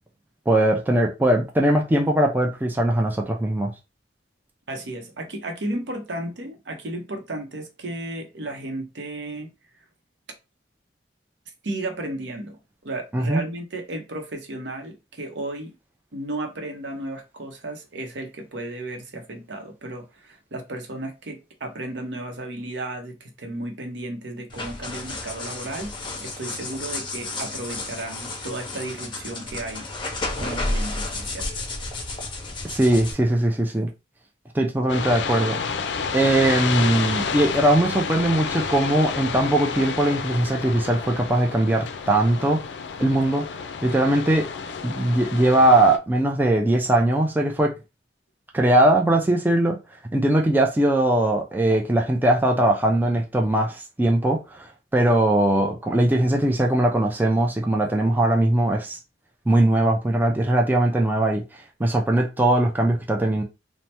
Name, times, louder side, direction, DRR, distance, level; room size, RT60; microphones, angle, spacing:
voice 1, 0.5-3.7 13.1-13.4 32.6-33.9 34.5-35.6 36.1-42.6 43.0-43.5 43.8-44.5 44.8-47.7 48.5-49.8 50.1-59.0 59.5-63.4, right 1 dB, 10° right, 0.4 m, -20 dB
voice 2, 4.7-9.5 11.6-12.6 12.8-15.7 16.1-31.5, right 1 dB, 75° right, 0.7 m, -34 dB
sound 1, 24.5-33.1, left 2 dB, 25° left, 0.6 m, -32 dB
sound 2, 34.9-46.0, left 5 dB, 70° left, 0.4 m, -30 dB
3.2 x 2.1 x 2.8 m
head